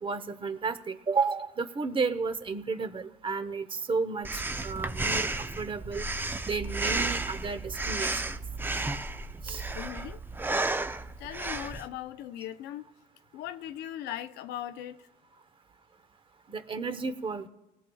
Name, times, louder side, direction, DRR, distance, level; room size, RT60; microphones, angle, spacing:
voice 1, 0.0-6.0 6.4-8.4 9.4-9.6 16.5-17.5, right 4 dB, 30° right, 0.9 m, -32 dB
Breathing, 4.2-11.9, right 2 dB, 10° right, 0.6 m, -32 dB
voice 2, 9.7-10.2 11.2-12.9 13.3-15.1, left 11 dB, 90° left, 0.7 m, -39 dB
19.0 x 13.5 x 2.3 m
cardioid pair, 110°, 17 cm